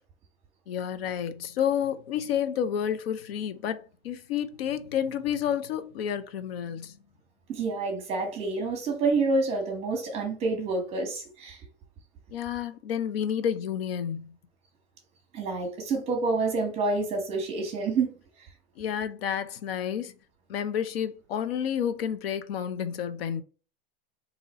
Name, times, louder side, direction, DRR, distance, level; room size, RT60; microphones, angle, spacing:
voice 1, 0.7-7.0 12.3-14.3 18.8-20.1 20.5-23.4, left 9 dB, 70° left, 0.7 m, -30 dB
voice 2, 7.5-11.6 15.3-18.1, right 3 dB, 20° right, 1.1 m, -28 dB
4.0 x 2.9 x 4.2 m
supercardioid pair, 170°, 30 cm